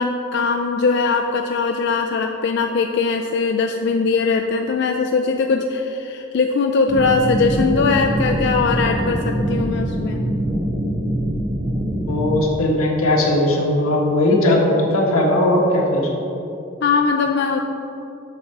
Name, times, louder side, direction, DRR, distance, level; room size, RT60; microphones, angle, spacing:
voice 1, 0.0-10.2 16.8-17.6, left 4 dB, 55° left, 3 dB, 0.3 m, -20 dB
sound 1, 6.9-12.4, equal, 30° right, 1.2 m, -23 dB
voice 2, 12.1-16.1, left 1 dB, 90° left, -1 dB, 1.4 m, -18 dB
7.2 x 6.5 x 4.7 m, 2.8 s
head